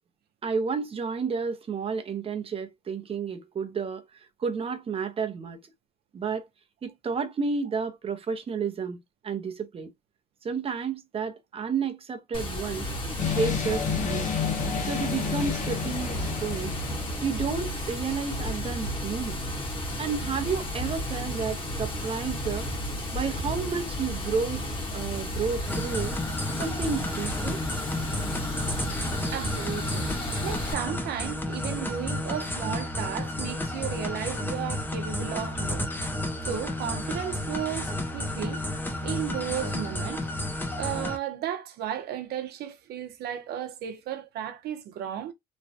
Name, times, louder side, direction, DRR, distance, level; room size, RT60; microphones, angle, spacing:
voice 1, 0.4-5.6 6.1-6.5 6.8-9.0 9.2-9.9 10.4-12.9 13.2-14.3 14.8-16.8 17.2-19.4 20.0-22.7 23.1-24.6 24.9-26.2 26.6-27.6, right 5 dB, 35° right, 0.7 m, -31 dB
Water, 12.3-30.7, equal, 30° left, 1.3 m, -33 dB
sound 1, 13.2-17.6, left 7 dB, 50° left, 0.9 m, -31 dB
sound 2, 25.7-41.2, left 1 dB, 10° left, 0.6 m, -32 dB
voice 2, 29.3-30.1 30.4-35.9 36.4-38.6 39.0-40.2 40.7-45.3, right 10 dB, 70° right, 0.8 m, -34 dB
3.1 x 2.2 x 2.7 m
cardioid pair, 110°, 17 cm